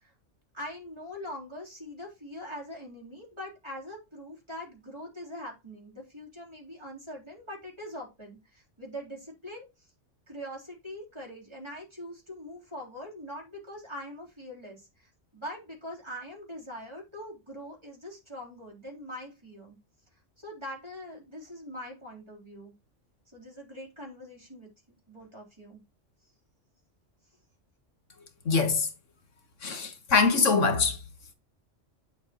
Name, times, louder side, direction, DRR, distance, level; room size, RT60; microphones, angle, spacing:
voice 1, 0.5-9.9 10.3-19.8 20.4-22.7 23.3-24.7 25.1-25.8, equal, 20° right, 3.8 m, -42 dB
voice 2, 28.5-28.9 29.6-31.0, left 4 dB, 80° left, 1.9 m, -23 dB
8.5 x 8.0 x 3.0 m
omnidirectional pair, 1.3 m